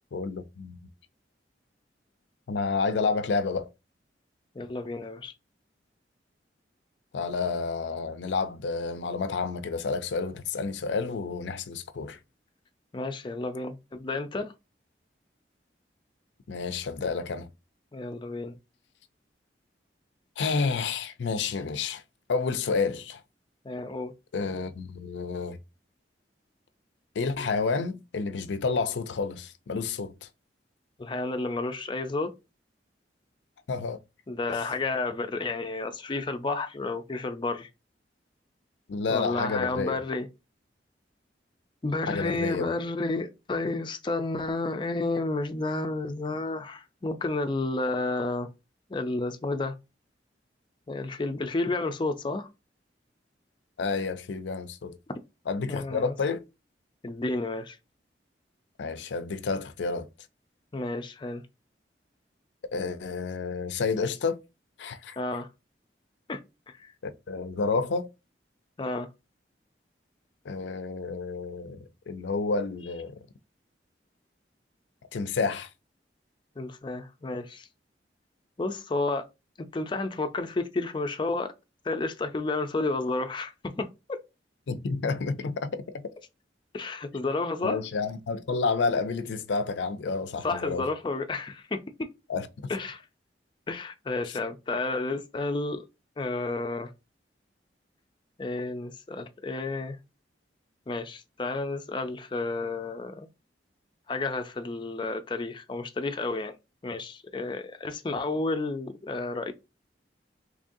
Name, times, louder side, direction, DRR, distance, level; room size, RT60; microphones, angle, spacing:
voice 1, 0.1-0.8 2.5-3.7 7.1-12.2 16.5-17.5 20.4-22.0 22.3-23.2 24.3-25.6 27.2-30.3 33.7-34.0 34.5-34.7 38.9-40.0 42.1-42.7 53.8-55.0 55.5-56.4 58.8-60.1 62.7-64.4 64.8-65.2 67.0-68.1 70.4-73.2 75.1-75.7 84.7-86.1 87.6-90.9 92.3-92.7, left 4 dB, 80° left, 0.5 m, -30 dB
voice 2, 4.5-5.3 12.9-14.5 17.9-18.5 23.6-24.1 31.0-32.3 34.3-37.7 39.1-40.3 41.8-48.5 48.9-49.7 50.9-52.5 55.7-56.1 57.0-57.8 60.7-61.4 65.2-65.5 66.3-66.4 66.7-66.9 68.8-69.1 76.6-77.7 78.6-79.3 79.6-81.5 81.8-84.2 86.7-87.8 90.4-92.1 92.7-93.0 93.7-95.8 96.2-96.9 98.4-100.0 100.9-103.3 104.1-106.6 106.8-109.5, left 3 dB, 25° left, 0.4 m, -31 dB
3.6 x 3.2 x 2.6 m
head